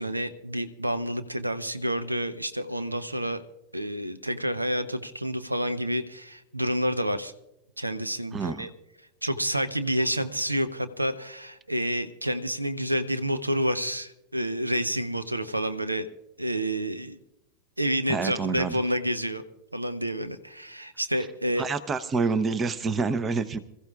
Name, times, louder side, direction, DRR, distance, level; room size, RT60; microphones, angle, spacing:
voice 1, 0.0-3.4 3.7-7.3 7.8-8.7 9.2-16.1 16.4-17.2 17.8-19.4 19.7-21.7, equal, 85° right, 12 dB, 0.7 m, -29 dB
voice 2, 8.3-8.7 18.1-18.8 21.6-23.6, right 4 dB, 20° right, 14 dB, 0.8 m, -27 dB
27.0 x 14.5 x 2.4 m, 0.87 s
figure-of-eight pair, 90°, 0 cm